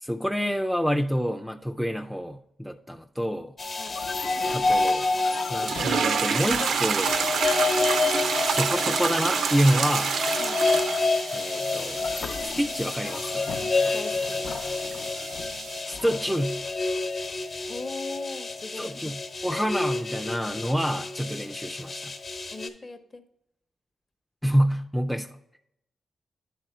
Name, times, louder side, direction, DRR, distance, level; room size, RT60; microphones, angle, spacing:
voice 1, 0.0-3.5 4.5-5.1 5.5-7.1 8.5-10.1 11.3-12.0 12.4-13.5 15.9-16.6 18.8-22.1 24.4-25.3, equal, ahead, 5 dB, 0.3 m, -27 dB
sound 1, 3.6-22.7, left 3 dB, 50° left, 0.9 m, -29 dB
voice 2, 3.8-4.1 10.4-10.6 13.9-14.5 17.7-19.0 22.5-23.2, left 3 dB, 30° left, 9 dB, 0.6 m, -39 dB
sound 2, 3.9-8.2 11.9-17.0, left 5 dB, 70° left, 0.5 m, -40 dB
sound 3, 5.6-15.8, right 6 dB, 80° right, 0.4 m, -29 dB
10.0 x 3.6 x 4.1 m, 0.78 s
cardioid pair, 110°, 0 cm